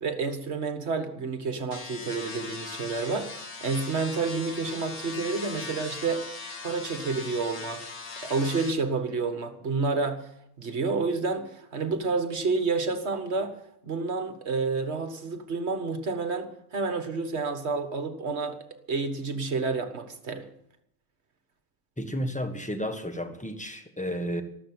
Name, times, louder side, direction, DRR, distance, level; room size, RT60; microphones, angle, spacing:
voice 1, 0.0-6.3 6.6-7.8 8.2-10.3 10.6-13.6 13.8-18.6 18.9-20.5, right 4 dB, 50° right, 1.8 m, -29 dB
sound 1, 1.7-8.7, left 4 dB, 80° left, 2.6 m, -39 dB
voice 2, 22.0-24.4, equal, 5° left, 1.4 m, -32 dB
14.0 x 13.0 x 7.8 m
omnidirectional pair, 1.5 m